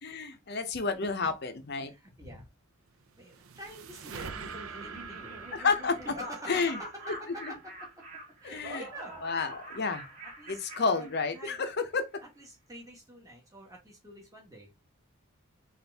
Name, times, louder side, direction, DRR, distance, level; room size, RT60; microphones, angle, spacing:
voice 1, 0.0-1.9 5.5-6.0 6.5-6.8 7.4-7.5 8.4-8.8 9.2-10.0 10.5-12.1, left 4 dB, 50° left, 0.6 m, -30 dB
voice 2, 1.8-2.5 3.2-5.5 6.0-7.6 8.4-9.2 10.2-11.6 12.4-14.7, right 1 dB, 15° right, 1.2 m, -47 dB
sound 1, 2.9-8.3, right 6 dB, 75° right, 0.5 m, -46 dB
Laughter, 4.1-11.6, equal, 40° right, 2.2 m, -45 dB
4.2 x 2.5 x 3.4 m
head